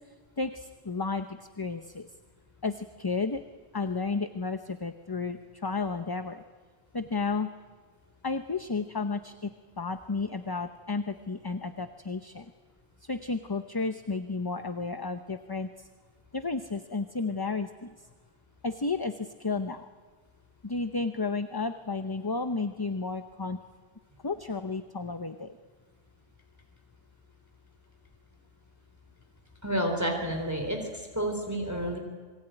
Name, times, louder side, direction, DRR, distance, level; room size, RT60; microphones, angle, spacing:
voice 1, 0.4-2.1 2.6-3.4 3.7-6.4 6.9-7.5 8.2-9.5 9.8-12.5 13.0-15.9 16.3-17.9 18.6-19.9 20.6-23.6 24.2-25.5, left 4 dB, 25° left, 9 dB, 0.7 m, -32 dB
voice 2, 29.6-32.0, right 1 dB, 15° right, 3 dB, 3.6 m, -30 dB
27.0 x 22.0 x 9.0 m, 1.5 s
omnidirectional pair, 1.1 m